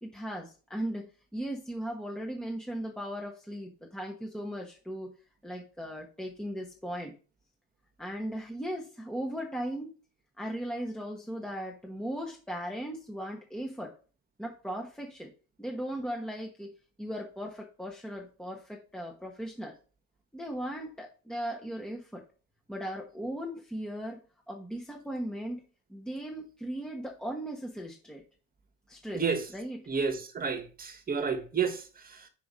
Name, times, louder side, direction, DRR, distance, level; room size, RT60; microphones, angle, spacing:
voice 1, 0.0-5.1 5.4-7.2 8.0-9.9 10.4-13.9 14.4-15.3 15.6-16.7 17.0-19.8 20.3-22.2 22.7-24.2 24.5-25.6 25.9-28.2 28.9-29.2 29.5-29.8, equal, ahead, 1.2 m, -37 dB
voice 2, 29.1-29.4 29.9-32.3, right 6 dB, 25° right, 1.5 m, -31 dB
5.0 x 4.5 x 5.5 m
supercardioid pair, 100°, 32 cm